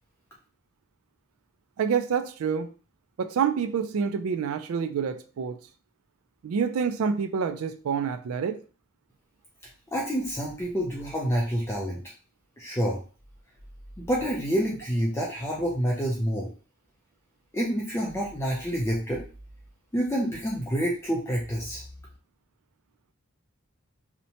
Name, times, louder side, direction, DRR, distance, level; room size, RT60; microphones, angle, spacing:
voice 1, 1.8-2.7 3.2-5.6 6.4-8.6, right 6 dB, 75° right, 0.3 m, -27 dB
voice 2, 9.9-12.0 12.6-13.0 14.0-16.5 17.5-19.2 19.9-21.8, equal, 10° left, 0.4 m, -28 dB
2.8 x 2.1 x 2.7 m
head